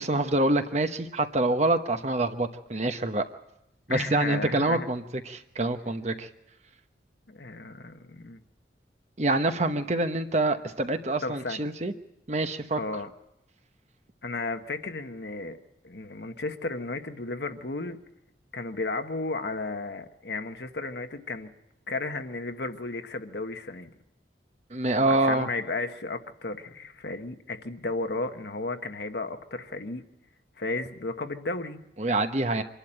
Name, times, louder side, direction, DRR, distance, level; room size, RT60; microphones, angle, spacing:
voice 1, 0.0-3.2 3.9-6.3 9.2-11.9 12.3-12.8 24.7-25.5 32.0-32.6, right 2 dB, 40° right, 8 dB, 1.0 m, -26 dB
voice 2, 3.9-4.9 7.3-8.4 11.2-11.6 12.8-13.1 14.2-15.6 15.8-18.0 18.5-21.5 21.9-23.9 25.1-30.0 30.6-31.8, left 3 dB, 70° left, 7 dB, 1.3 m, -34 dB
25.5 x 11.5 x 8.8 m, 0.86 s
head